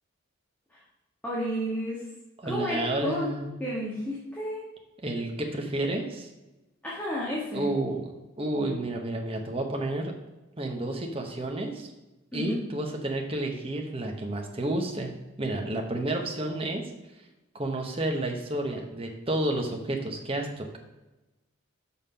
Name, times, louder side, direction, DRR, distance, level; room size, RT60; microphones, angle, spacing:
voice 1, 1.2-2.0 2.4-3.3 3.6-4.6 6.8-7.7 12.3-12.6, equal, 5° left, -7 dB, 1.4 m, -31 dB
voice 2, 2.4-3.5 5.0-6.3 7.5-8.1 8.4-10.1 10.6-11.9 12.3-16.8 17.5-20.8, right 1 dB, 25° right, 2 dB, 0.9 m, -31 dB
5.7 x 5.6 x 5.6 m, 1.0 s
head